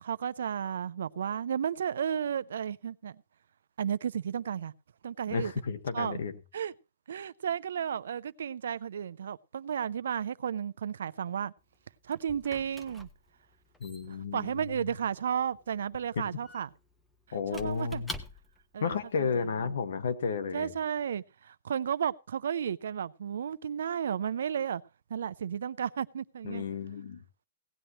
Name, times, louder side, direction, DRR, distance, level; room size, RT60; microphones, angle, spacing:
voice 1, 0.0-3.2 3.8-4.7 5.0-5.5 5.9-6.2 6.5-6.7 7.1-11.5 12.0-13.1 14.3-16.7 17.5-18.0 18.7-19.3 19.6-19.7 20.5-24.8 25.1-26.6, right 8 dB, 85° right, 0.6 m, -33 dB
voice 2, 5.3-6.3 13.8-14.7 16.1-16.2 17.3-18.1 18.8-20.7 26.4-27.2, left 5 dB, 80° left, 1.7 m, -32 dB
Squeak / Wood, 11.6-18.8, left 1 dB, 5° left, 0.9 m, -48 dB
17.5 x 10.0 x 3.1 m
hypercardioid pair, 155°, 0 cm